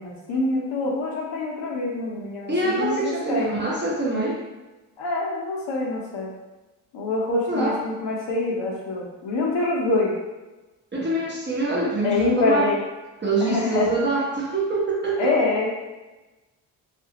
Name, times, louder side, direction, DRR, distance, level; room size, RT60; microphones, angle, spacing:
voice 1, 0.0-3.5 5.0-6.3 6.9-10.1 12.0-12.8 13.4-13.9 15.2-15.7, left 3 dB, 60° left, -3 dB, 0.9 m, -25 dB
voice 2, 2.5-4.4 7.5-7.8 10.9-12.7 13.2-15.3, right 2 dB, 20° right, -5 dB, 0.9 m, -25 dB
2.5 x 2.3 x 2.8 m, 1.1 s
supercardioid pair, 50°, 49 cm